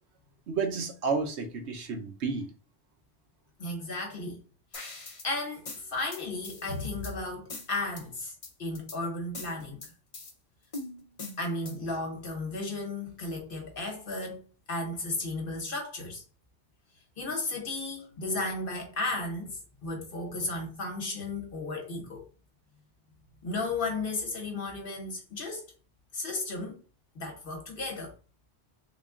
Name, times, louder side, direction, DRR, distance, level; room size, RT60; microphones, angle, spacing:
voice 1, 0.5-2.5, right 4 dB, 70° right, 1.0 m, -31 dB
voice 2, 3.6-4.4 4.7-4.9 5.2-8.3 8.6-9.8 11.4-16.2 17.2-22.3 23.4-25.7 26.1-26.8 27.1-28.1, left 2 dB, 50° left, 1.3 m, -34 dB
sound 1, 4.7-5.3 5.7-7.1 7.5-8.0 8.4-9.0 9.3-10.3 10.7-11.9, left 3 dB, 35° left, 0.7 m, -42 dB
3.5 x 2.3 x 3.7 m
omnidirectional pair, 1.2 m